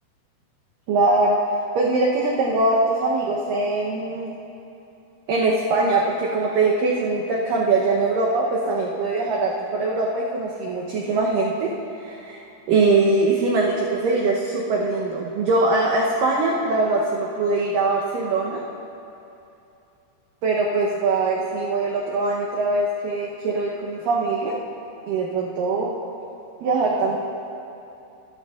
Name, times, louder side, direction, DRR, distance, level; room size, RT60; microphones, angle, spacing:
voice 1, 0.9-1.4 1.8-4.3 5.3-11.7 12.0-12.4 12.7-18.6 20.4-24.6 25.1-25.9 26.6-27.2, right 3 dB, 85° right, -3 dB, 1.9 m, -22 dB
15.5 x 13.0 x 2.4 m, 2.8 s
omnidirectional pair, 5.0 m